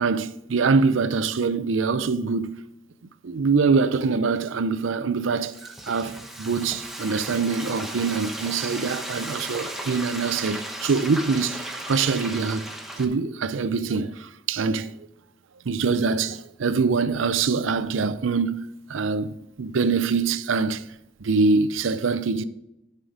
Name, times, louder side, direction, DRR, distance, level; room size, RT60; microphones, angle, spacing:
voice 1, 0.0-2.6 3.2-12.7 13.0-14.9 15.7-20.9 21.2-22.4, right 4 dB, 75° right, 0.5 m, -24 dB
Frying (food), 5.2-13.0, right 1 dB, ahead, 0.9 m, -36 dB
11.0 x 5.7 x 5.0 m
head